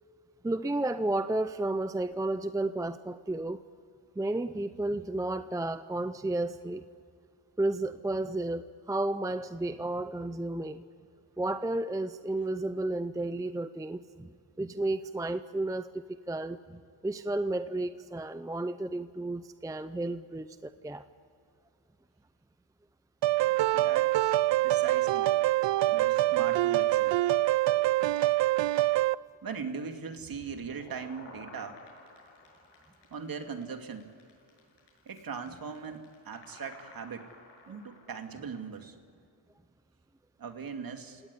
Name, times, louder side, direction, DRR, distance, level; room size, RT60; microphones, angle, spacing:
voice 1, 0.4-3.6 4.2-6.9 7.6-10.8 11.4-14.3 14.6-21.1, right 2 dB, 10° right, 11 dB, 0.6 m, -32 dB
sound 1, 23.2-29.2, right 16 dB, 65° right, 0.6 m, -25 dB
voice 2, 23.7-24.3 24.6-25.3 25.8-27.2 29.4-31.8 33.1-34.1 35.1-37.3 37.7-39.0 40.4-41.2, right 6 dB, 45° right, 5 dB, 2.6 m, -40 dB
sound 2, 30.2-38.3, left 3 dB, 65° left, 7.4 m, -53 dB
30.0 x 18.0 x 9.8 m, 2.5 s
cardioid pair, 100°, 47 cm